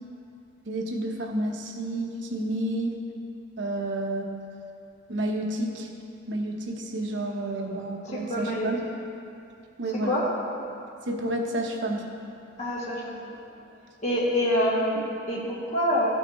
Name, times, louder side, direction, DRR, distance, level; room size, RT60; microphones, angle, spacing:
voice 1, 0.7-3.0 3.6-4.3 5.1-5.9 6.3-8.8 9.8-10.2 11.1-12.0, right 1 dB, 70° right, 1 dB, 0.9 m, -30 dB
voice 2, 8.0-8.7 10.0-10.3 12.6-13.3 14.0-16.1, equal, 40° left, -6 dB, 1.6 m, -26 dB
13.0 x 5.7 x 3.1 m, 2.6 s
head